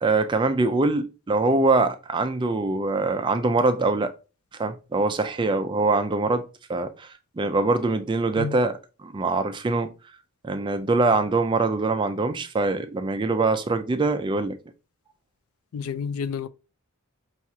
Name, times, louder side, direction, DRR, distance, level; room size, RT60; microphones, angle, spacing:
voice 1, 0.0-4.1 4.6-9.9 10.4-14.6, right 3 dB, 20° right, 0.3 m, -23 dB
voice 2, 15.7-16.5, left 6 dB, 70° left, 0.3 m, -30 dB
5.8 x 2.4 x 2.7 m
head